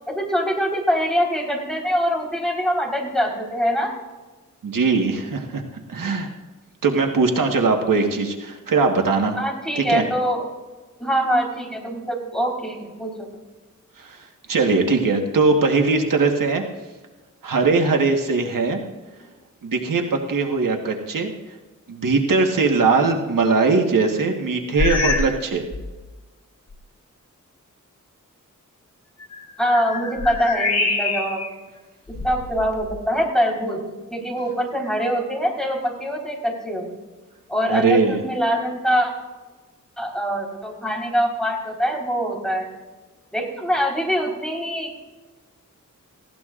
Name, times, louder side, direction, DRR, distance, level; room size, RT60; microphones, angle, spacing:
voice 1, 0.1-3.9 9.4-10.4 11.0-13.3 29.6-31.4 32.1-33.8 34.1-36.9 37.5-39.1 40.0-42.7 43.3-45.1, equal, ahead, -1 dB, 4.0 m, -23 dB
voice 2, 4.6-5.6 5.9-6.3 6.8-9.4 9.7-10.0 14.0-16.6 17.4-18.8 19.6-21.3 21.9-25.7 37.7-38.2, right 4 dB, 90° right, 3 dB, 1.5 m, -20 dB
sound 1, 24.8-25.4 25.7-26.0 26.7-26.8 29.2-31.5 32.1-33.1, left 3 dB, 55° left, 2.8 m, -26 dB
19.0 x 16.0 x 2.5 m, 1.2 s
wide cardioid pair, 80°, 32 cm